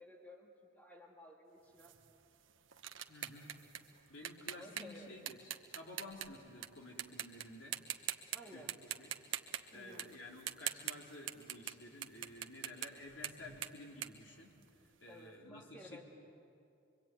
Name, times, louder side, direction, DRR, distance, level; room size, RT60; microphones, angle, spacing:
voice 1, 0.0-1.9 4.5-5.2 8.3-8.8 9.7-10.1 15.1-16.0, left 1 dB, 10° left, 1 dB, 1.8 m, -55 dB
sound 1, 1.8-6.7 7.0-7.4 7.7-8.4 8.7-15.0, right 11 dB, 75° right, 1.1 m, -43 dB
voice 2, 3.1-3.5 4.1-5.5 5.7-7.8 8.5-9.1 9.7-14.5 15.0-16.0, left 1 dB, 65° left, -1 dB, 3.9 m, -52 dB
24.5 x 24.0 x 9.3 m, 2.6 s
head